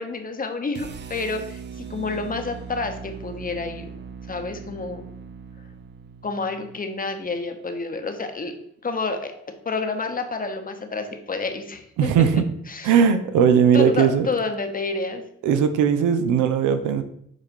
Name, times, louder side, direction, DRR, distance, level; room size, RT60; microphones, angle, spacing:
voice 1, 0.0-3.9 4.3-5.1 6.2-8.5 8.8-12.9 13.4-13.5 13.7-15.2, left 3 dB, 30° left, 7 dB, 0.9 m, -29 dB
sound 1, 0.7-6.9, right 6 dB, 35° right, 0.5 m, -39 dB
voice 2, 12.0-12.5 12.8-14.3 15.4-17.0, right 7 dB, 90° right, 9 dB, 0.7 m, -18 dB
7.4 x 2.5 x 5.1 m, 0.71 s
cardioid pair, 90°, 30 cm